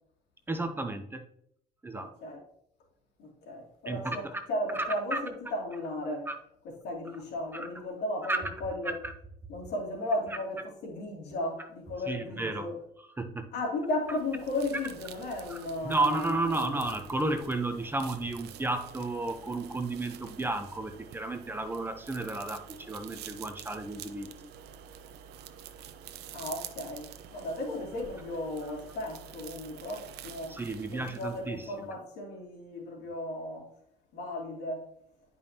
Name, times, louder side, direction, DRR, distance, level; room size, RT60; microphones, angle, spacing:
voice 1, 0.5-1.2 1.8-2.1 3.9-4.2 4.7-4.8 5.1-5.2 6.3-6.4 7.5-7.7 8.3-8.4 12.1-12.7 13.2-13.5 15.5-15.6 15.8-24.3 30.5-31.6, right 2 dB, 10° right, 0.8 m, -32 dB
voice 2, 1.9-2.4 3.2-6.3 6.6-9.0 9.5-12.8 13.5-16.7 26.3-30.6 30.9-33.7 34.1-34.9, left 1 dB, 80° left, 2.7 m, -35 dB
sound 1, 14.0-31.9, right 9 dB, 80° right, 0.7 m, -48 dB
10.5 x 5.4 x 2.8 m
cardioid pair, 110°, 17 cm